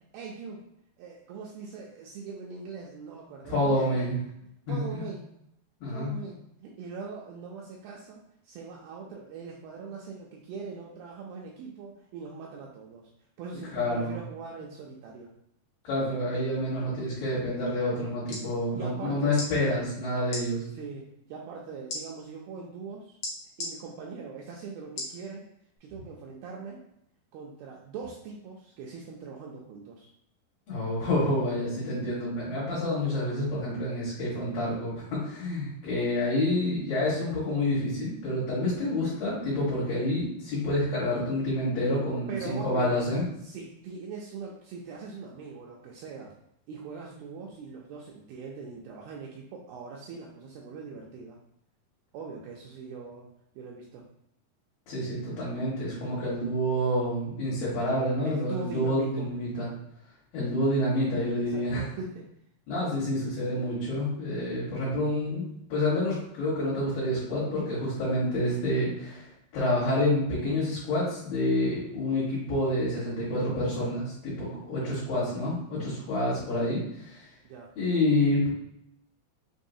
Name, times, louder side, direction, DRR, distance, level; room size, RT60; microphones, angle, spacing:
voice 1, 0.1-0.6 1.0-4.1 4.7-5.3 5.9-13.1 13.4-15.3 18.7-19.4 20.7-23.2 23.6-25.5 25.8-26.8 27.3-30.1 42.3-43.0 43.4-46.3 46.7-51.4 52.1-53.3 53.6-54.1 58.2-59.3 61.5-62.2 77.4-77.7, right 5 dB, 85° right, -2 dB, 2.1 m, -41 dB
voice 2, 3.4-4.1 4.7-5.1 5.8-6.1 13.7-14.2 15.8-20.6 30.7-43.2 54.9-59.7 60.3-61.8 62.7-77.3 77.8-78.5, left 1 dB, 60° left, -10 dB, 3.0 m, -28 dB
sound 1, 18.3-18.5 19.3-19.5 20.2-20.4 21.9-22.0 23.2-23.7 25.0-25.2 25.8-25.9, left 2 dB, 75° left, 1.5 m, -34 dB
6.2 x 3.1 x 2.7 m, 0.77 s
omnidirectional pair, 4.9 m